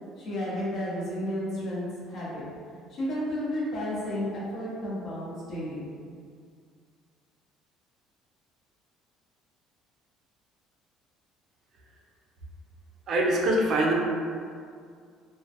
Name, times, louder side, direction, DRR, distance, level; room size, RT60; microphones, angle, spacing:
voice 1, 0.2-2.4 2.9-5.8, equal, 45° left, -7 dB, 0.7 m, -32 dB
voice 2, 13.1-14.0, right 1 dB, 45° right, -1 dB, 0.4 m, -23 dB
2.1 x 2.1 x 2.7 m, 2.1 s
cardioid pair, 140°, 0 cm